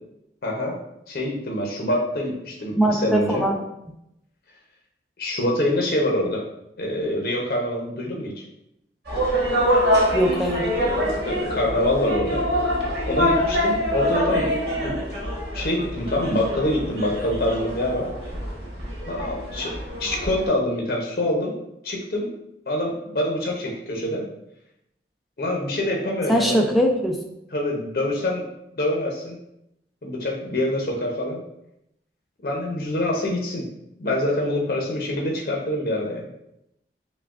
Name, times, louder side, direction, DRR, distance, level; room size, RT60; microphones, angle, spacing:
voice 1, 0.4-0.8 1.1-3.4 5.2-6.4 6.8-8.4 11.2-12.5 13.0-14.5 14.8-15.0 15.5-18.1 19.1-19.7 20.0-21.5 21.8-22.3 22.7-24.2 25.4-26.7 27.5-28.5 28.8-29.4 30.0-31.4 32.4-33.6 34.0-36.3, left 1 dB, 55° left, -1 dB, 0.6 m, -25 dB
voice 2, 2.8-3.5 10.1-10.7 26.3-27.2, equal, ahead, 0 dB, 0.3 m, -21 dB
sound 1, 9.0-20.5, equal, 70° right, 1.3 m, -25 dB
5.7 x 2.2 x 2.4 m, 0.82 s
head